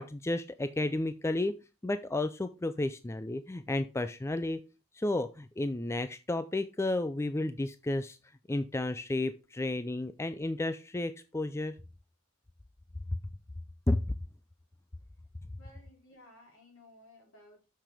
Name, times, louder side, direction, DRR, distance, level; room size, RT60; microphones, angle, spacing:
voice 1, 0.0-1.5 1.8-4.6 4.9-8.2 8.5-11.8 13.1-13.2 13.9-14.0, left 2 dB, 15° left, 11 dB, 0.4 m, -32 dB
voice 2, 15.6-17.6, left 1 dB, 65° left, 1 dB, 3.9 m, -57 dB
6.8 x 6.2 x 4.9 m, 0.29 s
head